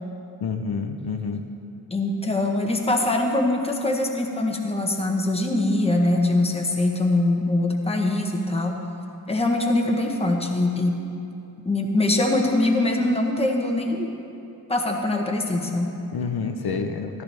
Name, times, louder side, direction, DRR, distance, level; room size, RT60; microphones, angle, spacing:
voice 1, 0.4-1.4 16.1-17.2, left 5 dB, 80° left, 5 dB, 0.8 m, -28 dB
voice 2, 1.9-8.8 9.3-11.0 11.6-14.1 14.7-15.9, left 2 dB, 15° left, 1 dB, 1.0 m, -23 dB
14.0 x 13.5 x 3.4 m, 2.7 s
wide cardioid pair, 155°, 37 cm